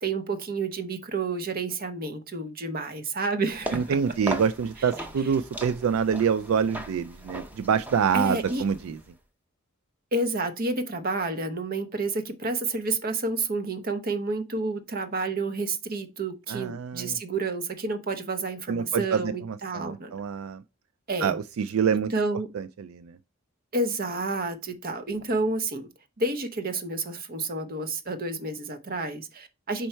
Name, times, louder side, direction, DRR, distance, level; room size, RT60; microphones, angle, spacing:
voice 1, 0.0-4.0 8.1-8.6 10.1-20.1 21.1-21.3 21.9-22.5 23.7-25.9 26.2-29.9, right 3 dB, 45° right, 0.9 m, -30 dB
sound 1, 3.5-9.1, right 1 dB, 10° right, 0.7 m, -38 dB
voice 2, 3.7-9.0 16.5-17.2 18.7-20.6 21.2-22.1 22.5-23.2, right 7 dB, 75° right, 0.3 m, -26 dB
5.3 x 4.5 x 4.3 m
head